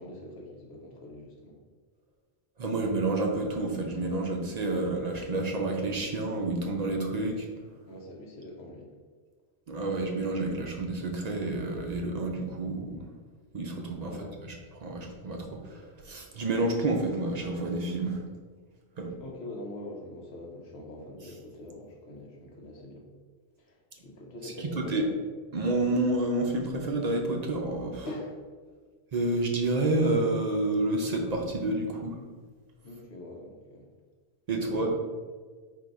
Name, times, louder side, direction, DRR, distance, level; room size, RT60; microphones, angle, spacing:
voice 1, 0.0-1.6 7.9-8.9 14.0-14.4 19.2-23.0 23.6-25.1 28.0-28.4 32.8-33.9 34.5-34.9, left 1 dB, 75° left, 0 dB, 1.1 m, -43 dB
voice 2, 2.6-7.5 9.7-13.0 13.5-14.1 14.7-18.2 19.0-19.2 24.4-24.5 24.9-25.0 25.5-28.1 29.1-32.2 34.5-34.9, right 2 dB, 50° right, 1 dB, 0.5 m, -29 dB
3.9 x 2.7 x 4.6 m, 1.5 s
omnidirectional pair, 1.1 m